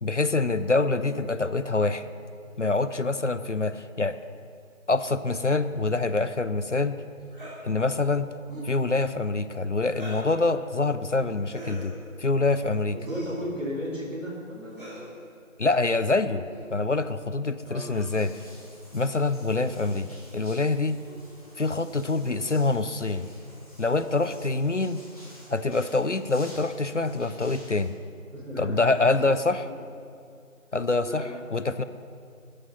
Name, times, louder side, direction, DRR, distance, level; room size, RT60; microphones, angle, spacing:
voice 1, 0.0-2.1 2.6-4.1 4.9-7.0 7.6-8.3 8.6-11.9 12.2-13.0 15.6-18.3 18.9-20.1 20.3-21.0 21.6-23.3 23.8-25.0 25.5-27.9 28.6-29.7 30.7-31.2 31.5-31.8, left 3 dB, 60° left, 12 dB, 0.5 m, -25 dB
voice 2, 0.8-1.2 12.9-15.1 17.6-18.0 28.3-28.8 29.2-29.8 31.1-31.3, equal, 60° right, -1 dB, 3.8 m, -36 dB
sound 1, 7.3-7.6 8.4-8.7 9.9-10.3 11.4-11.9 13.0-13.4 14.7-15.1 16.4-16.6 17.7-18.0 18.9-19.4 21.1-21.2 22.2-22.4 23.1-23.3 24.1-24.3 25.8-26.2, right 1 dB, 40° right, 3.8 m, -42 dB
sound 2, 17.9-27.9, equal, 25° left, 2.8 m, -51 dB
12.0 x 10.0 x 5.7 m, 2.3 s
figure-of-eight pair, 175°, 42 cm